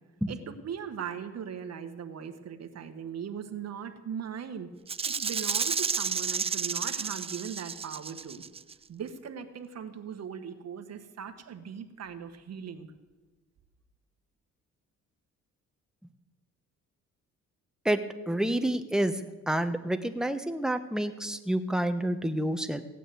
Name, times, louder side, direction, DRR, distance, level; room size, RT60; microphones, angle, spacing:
voice 1, 0.3-4.7 5.1-8.4 8.9-12.9, right 7 dB, 55° right, 8 dB, 1.4 m, -39 dB
Rattle (instrument), 4.9-8.7, right 6 dB, 20° right, 0.4 m, -31 dB
voice 2, 17.8-19.1 19.5-22.8, right 1 dB, ahead, 8 dB, 1.0 m, -28 dB
16.0 x 9.2 x 7.9 m, 1.2 s
cardioid pair, 90°, 30 cm